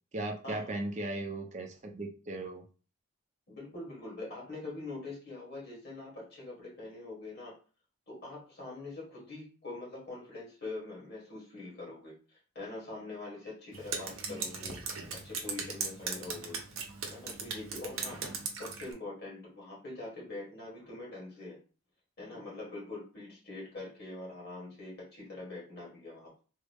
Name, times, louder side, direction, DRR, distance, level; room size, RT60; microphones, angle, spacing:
voice 1, 0.1-2.6, right 2 dB, 35° right, 3 dB, 0.6 m, -37 dB
voice 2, 3.5-7.6 8.1-12.1 12.5-14.8 15.1-16.6 17.1-18.2 18.5-21.6 22.2-26.4, left 2 dB, 50° left, -4 dB, 1.6 m, -44 dB
Drip, 13.7-18.9, right 5 dB, 65° right, 0.7 m, -39 dB
3.6 x 2.1 x 3.4 m, 0.36 s
head